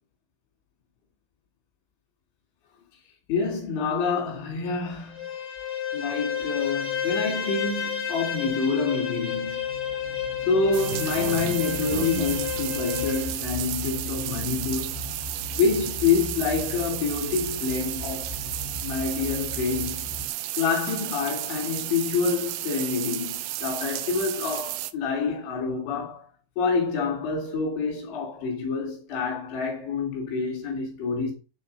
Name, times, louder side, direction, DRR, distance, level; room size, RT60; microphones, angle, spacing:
voice 1, 3.3-5.3 5.9-9.7 10.4-14.9 15.5-18.4 18.8-20.1 20.6-26.3 26.6-31.3, left 5 dB, 90° left, 5.3 m, -27 dB
Bowed string instrument, 5.0-13.3, left 8 dB, 30° left, 2.8 m, -31 dB
sound 1, 9.2-20.3, left 2 dB, 65° left, 3.2 m, -38 dB
sound 2, 10.7-24.9, right 15 dB, 80° right, 2.9 m, -33 dB
12.0 x 4.1 x 5.5 m
omnidirectional pair, 5.1 m